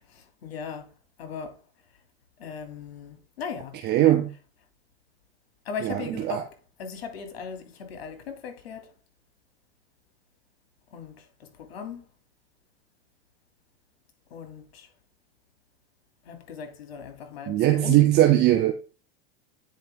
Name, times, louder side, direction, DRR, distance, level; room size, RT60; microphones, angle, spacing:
voice 1, 0.4-0.8 1.2-1.6 2.4-3.7 4.0-4.2 5.6-6.5 6.8-8.9 10.9-12.0 14.3-14.9 16.3-18.0, left 6 dB, 90° left, 2.6 m, -38 dB
voice 2, 3.8-4.3 5.8-6.4 17.5-18.7, right 14 dB, 35° right, 0.8 m, -20 dB
9.4 x 4.9 x 3.6 m
supercardioid pair, 140°, 30 cm